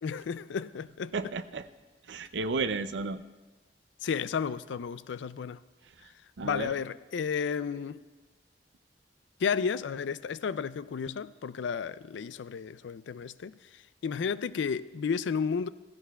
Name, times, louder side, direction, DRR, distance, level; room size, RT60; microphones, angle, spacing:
voice 1, 0.0-1.1 4.0-5.6 6.4-8.0 9.4-15.7, left 6 dB, 85° left, 0.4 m, -32 dB
voice 2, 1.1-1.7 2.1-3.2 6.4-6.7, right 3 dB, 80° right, 0.5 m, -32 dB
16.5 x 15.5 x 2.3 m
head